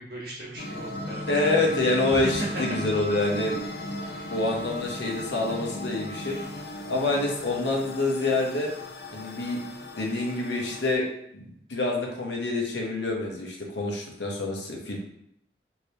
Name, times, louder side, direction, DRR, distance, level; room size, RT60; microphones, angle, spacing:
voice 1, 0.0-1.6 2.1-2.6, right 1 dB, 60° right, -5 dB, 1.2 m, -36 dB
sound 1, 0.6-10.9, left 1 dB, 60° left, 0.5 m, -36 dB
voice 2, 1.3-3.5 4.3-6.4 6.9-8.7 9.1-9.6 10.0-11.0 11.3-15.0, left 2 dB, 85° left, -1 dB, 0.9 m, -27 dB
3.2 x 2.8 x 2.8 m, 0.73 s
head